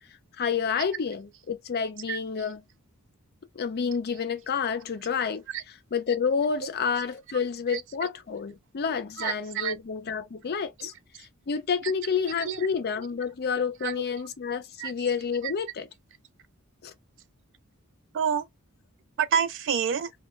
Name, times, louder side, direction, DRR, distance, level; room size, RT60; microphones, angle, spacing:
voice 1, 0.4-2.6 3.5-5.4 5.9-15.9 16.8-16.9, left 6 dB, 45° left, 0.5 m, -29 dB
voice 2, 9.2-9.8 10.8-10.9 12.2-12.7 13.8-13.9 14.8-14.9 18.1-18.5 19.2-20.1, right 7 dB, 55° right, 0.3 m, -28 dB
2.2 x 2.2 x 2.9 m
head